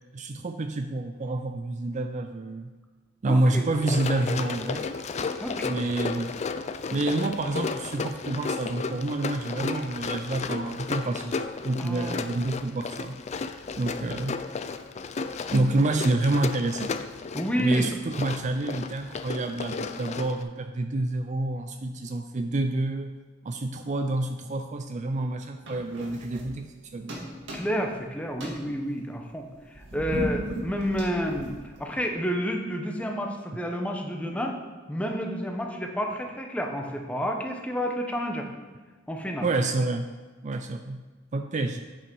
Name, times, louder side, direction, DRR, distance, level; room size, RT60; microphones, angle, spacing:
voice 1, 0.1-2.7 3.2-4.9 5.7-6.3 6.9-13.2 13.8-14.5 15.5-16.9 17.6-23.2 23.4-27.2 39.4-40.1 40.4-41.8, right 2 dB, 35° right, 7 dB, 0.4 m, -28 dB
voice 2, 3.3-3.6 5.4-5.7 11.8-12.3 17.3-17.9 27.5-29.4 29.8-34.6 34.9-38.5 39.1-39.5, equal, 5° left, 2 dB, 0.9 m, -30 dB
Run, 3.7-20.4, left 4 dB, 35° left, 0.4 m, -34 dB
sound 1, 25.6-26.8 27.1-28.0 28.3-32.1, right 1 dB, 65° right, 2.0 m, -36 dB
8.3 x 5.6 x 5.3 m, 1.3 s
head